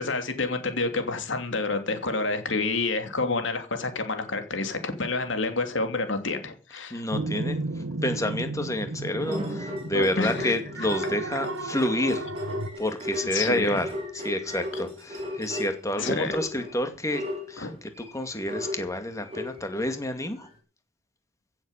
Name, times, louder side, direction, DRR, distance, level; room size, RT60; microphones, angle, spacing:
voice 1, 0.0-7.0 9.9-10.9 13.3-13.8 16.0-16.3 17.6-17.7, left 3 dB, 65° left, 3.0 m, -29 dB
voice 2, 6.9-7.6 8.0-12.3 12.8-17.2 17.5-20.5, left 1 dB, 15° left, 2.2 m, -29 dB
sound 1, 7.1-12.7, right 2 dB, 80° right, 1.3 m, -34 dB
sound 2, 9.2-16.7 17.1-19.9 20.4-20.5, left 1 dB, 30° right, 5.1 m, -35 dB
16.0 x 7.7 x 7.3 m
head